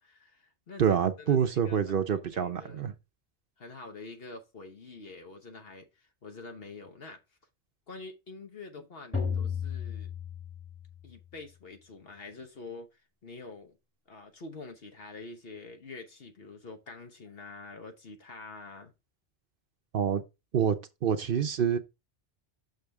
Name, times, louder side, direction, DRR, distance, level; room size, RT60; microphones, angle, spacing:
voice 1, 0.0-2.9 3.6-7.2 7.9-10.1 11.0-13.8 14.1-18.9, left 3 dB, 60° left, 1.2 m, -46 dB
voice 2, 0.8-2.9 19.9-20.2 20.5-21.8, right 8 dB, 55° right, 0.8 m, -27 dB
sound 1, 9.1-11.1, left 6 dB, 10° left, 1.5 m, -34 dB
6.5 x 6.5 x 3.4 m
omnidirectional pair, 1.2 m